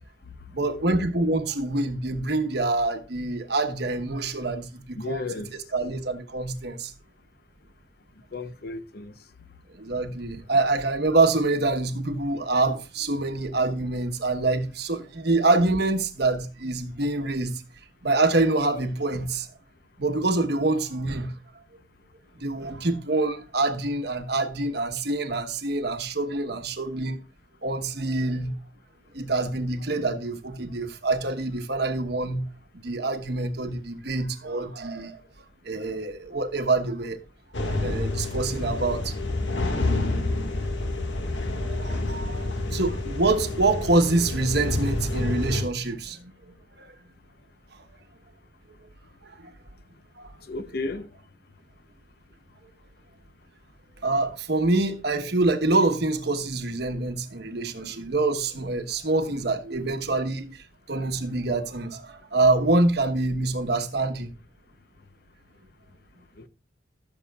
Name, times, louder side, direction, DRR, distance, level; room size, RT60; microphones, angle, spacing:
voice 1, 0.5-6.9 9.7-17.6 18.0-19.5 20.0-21.3 22.4-27.2 27.6-28.5 29.1-32.5 32.7-35.2 35.6-37.2 37.6-39.2 41.6-46.9 49.2-49.5 50.2-50.3 54.0-64.3, right 2 dB, 60° right, 1.1 m, -26 dB
voice 2, 5.0-5.5 8.3-9.1 50.5-51.1 66.4-66.5, left 3 dB, 55° left, 0.7 m, -33 dB
sound 1, 37.5-45.6, left 2 dB, 70° left, 1.8 m, -28 dB
15.5 x 7.2 x 2.3 m
head